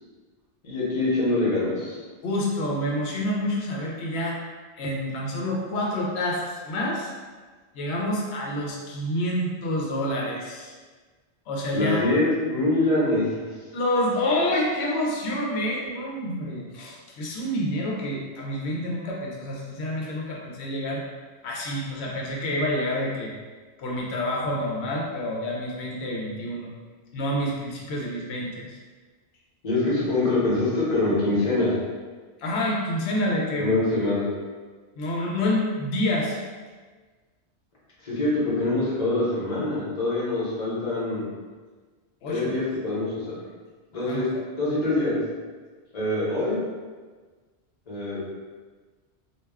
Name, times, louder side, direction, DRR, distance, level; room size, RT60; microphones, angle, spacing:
voice 1, 0.6-2.0 11.7-13.3 29.6-31.8 33.6-34.3 38.0-41.3 42.3-43.4 43.9-44.3 44.6-45.2 45.9-46.6 47.9-48.2, left 2 dB, 40° left, -7 dB, 0.9 m, -24 dB
voice 2, 2.2-4.4 4.8-7.1 7.7-10.7 11.5-12.0 13.7-21.0 21.4-23.3 23.8-26.7 27.1-28.8 32.4-33.7 35.0-36.4 42.2-42.5 43.9-44.2, left 1 dB, 75° left, -2 dB, 0.8 m, -28 dB
2.3 x 2.2 x 3.3 m, 1.4 s
omnidirectional pair, 1.2 m